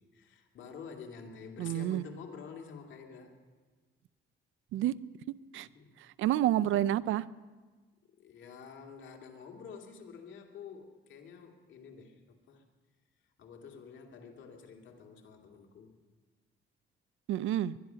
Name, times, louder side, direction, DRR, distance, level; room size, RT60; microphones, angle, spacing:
voice 1, 0.0-3.3 5.7-5.9 8.2-12.6 13.4-16.0, left 6 dB, 70° left, 2 dB, 2.4 m, -49 dB
voice 2, 1.6-2.0 4.7-4.9 5.5-5.7 6.2-7.3 17.3-17.8, right 12 dB, 80° right, 19 dB, 0.5 m, -29 dB
21.5 x 11.5 x 5.7 m, 1.3 s
cardioid pair, 90°, 20 cm